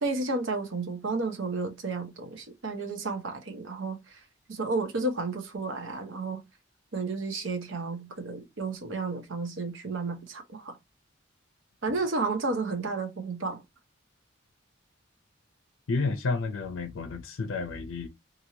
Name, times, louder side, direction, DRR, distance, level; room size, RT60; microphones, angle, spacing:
voice 1, 0.0-4.2 4.5-6.4 6.9-10.8 11.8-13.6, right 3 dB, 70° right, 0.7 m, -32 dB
voice 2, 15.9-18.1, left 3 dB, 80° left, 0.5 m, -31 dB
2.9 x 2.6 x 2.7 m
head